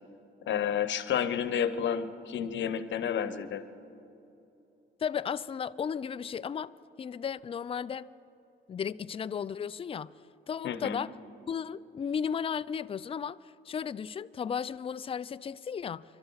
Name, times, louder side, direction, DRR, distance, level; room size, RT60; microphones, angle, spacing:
voice 1, 0.5-3.6 10.6-11.0, left 8 dB, 65° left, 1.0 m, -30 dB
voice 2, 5.0-6.7 7.0-8.1 8.7-10.1 10.5-11.1 11.5-13.4 13.7-16.0, left 7 dB, 30° left, 0.4 m, -34 dB
26.0 x 12.5 x 4.1 m
cardioid pair, 90°, 20 cm